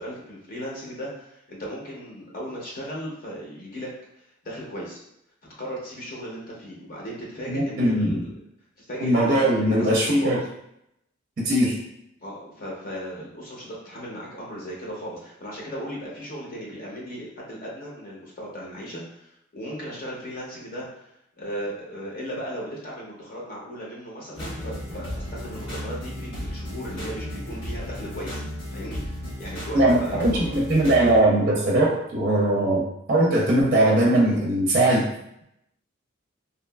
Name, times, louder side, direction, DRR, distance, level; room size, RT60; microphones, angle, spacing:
voice 1, 0.0-3.9 4.2-5.0 5.6-8.3 8.8-10.3 12.2-21.1 21.4-28.4 28.7-30.4, equal, 45° left, -4 dB, 0.6 m, -36 dB
voice 2, 7.5-8.3 9.0-10.4 11.4-11.8 29.7-35.1, right 1 dB, 45° right, -3 dB, 0.5 m, -20 dB
sound 1, 24.3-31.2, equal, 75° left, 1.1 m, -34 dB
2.8 x 2.3 x 2.2 m, 0.77 s
head